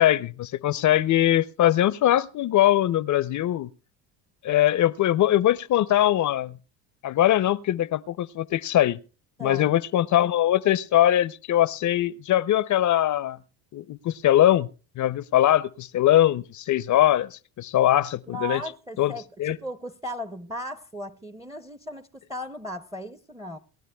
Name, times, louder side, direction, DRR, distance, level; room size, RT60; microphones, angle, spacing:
voice 1, 0.0-3.7 4.4-6.5 7.0-9.0 9.4-13.4 13.7-14.7 15.0-18.6 19.0-19.1 19.4-19.6, left 12 dB, 45° left, 0.6 m, -21 dB
voice 2, 9.4-9.8 18.3-23.6, equal, 10° right, 0.6 m, -36 dB
28.5 x 12.0 x 2.2 m
supercardioid pair, 85°, 44 cm